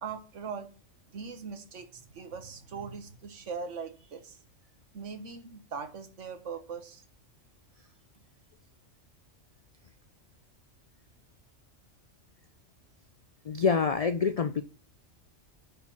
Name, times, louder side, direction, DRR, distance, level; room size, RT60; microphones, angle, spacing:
voice 1, 0.0-0.7 1.1-4.4 4.9-7.0, right 5 dB, 75° right, 1.5 m, -40 dB
voice 2, 13.5-14.6, left 5 dB, 70° left, 0.3 m, -26 dB
10.0 x 4.5 x 5.7 m
omnidirectional pair, 1.3 m